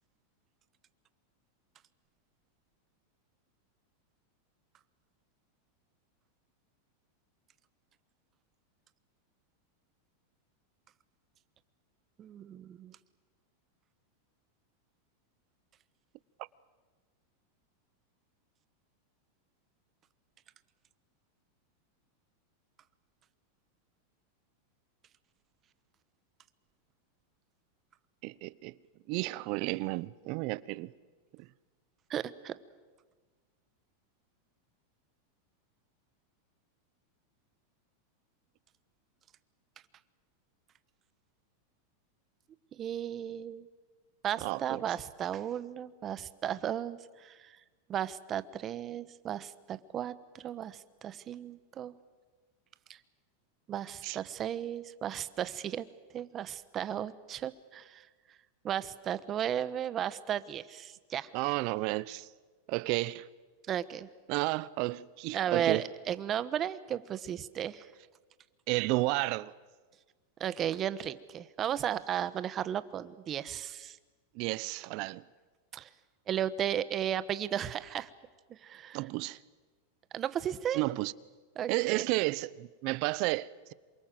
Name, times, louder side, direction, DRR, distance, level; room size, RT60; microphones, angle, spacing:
voice 1, 12.2-13.0 32.1-32.6 42.8-43.7 44.2-47.5 47.9-51.9 53.7-55.8 56.1-58.1 58.6-61.3 63.7-64.1 65.3-67.9 70.4-74.0 75.7-75.9 76.3-78.1 78.6-79.0 80.1-80.8 81.6-82.0, right 10 dB, 30° right, 1.2 m, -35 dB
voice 2, 28.2-28.8 29.1-30.9 31.3-31.5 44.4-44.8 54.0-54.2 61.3-62.3 62.7-63.3 64.3-65.8 68.7-69.5 74.3-75.2 78.9-79.4 80.7-81.1 81.7-83.7, right 21 dB, 50° right, 0.8 m, -32 dB
27.0 x 24.0 x 7.7 m
supercardioid pair, 130°, 0 cm